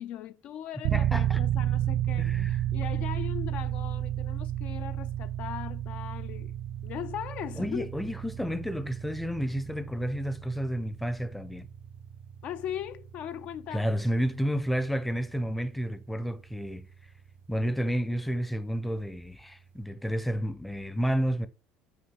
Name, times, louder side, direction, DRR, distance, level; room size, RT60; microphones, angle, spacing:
voice 1, 0.0-6.5 6.8-7.9 12.4-13.9, left 10 dB, 50° left, 0.4 m, -39 dB
sound 1, 0.8-17.6, right 11 dB, 60° right, 0.5 m, -33 dB
voice 2, 0.9-1.4 2.2-2.6 7.6-11.7 13.7-16.9 17.5-21.5, equal, 5° left, 0.6 m, -31 dB
8.1 x 2.8 x 6.0 m
cardioid pair, 130°, 3 cm